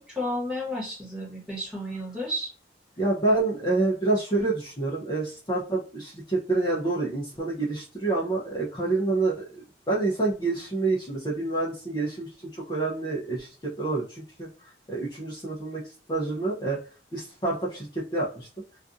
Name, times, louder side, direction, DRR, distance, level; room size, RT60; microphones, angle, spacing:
voice 1, 0.0-2.5, left 1 dB, 5° right, -5 dB, 1.2 m, -32 dB
voice 2, 3.0-16.8 17.1-18.5, right 3 dB, 25° left, -6 dB, 0.6 m, -28 dB
2.5 x 2.4 x 2.5 m, 0.36 s
head